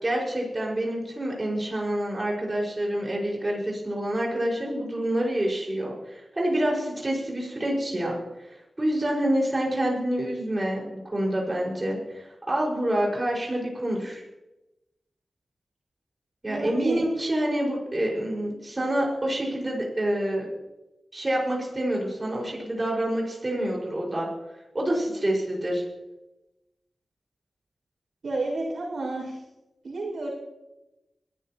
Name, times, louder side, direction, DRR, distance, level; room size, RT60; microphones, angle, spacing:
voice 1, 0.0-8.2 8.4-14.2 16.4-20.5 21.1-24.3 24.7-25.8, right 1 dB, 30° right, -3 dB, 5.4 m, -27 dB
voice 2, 16.5-17.0 28.2-29.4 29.8-30.3, right 2 dB, 75° right, -2 dB, 6.1 m, -30 dB
21.5 x 14.0 x 3.0 m, 0.99 s
wide cardioid pair, 80°, 0 cm